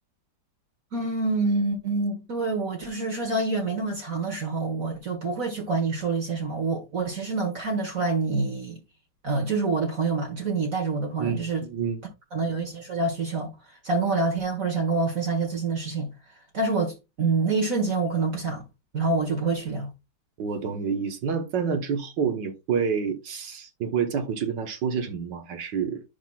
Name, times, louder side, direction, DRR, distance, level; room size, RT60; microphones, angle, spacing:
voice 1, 0.9-8.8 9.2-11.7 12.3-16.1 16.5-18.6 18.9-19.9, right 3 dB, 50° right, 1.6 m, -27 dB
voice 2, 11.2-12.0 20.4-26.0, right 6 dB, 75° right, 1.7 m, -28 dB
10.5 x 5.7 x 2.3 m
omnidirectional pair, 2.0 m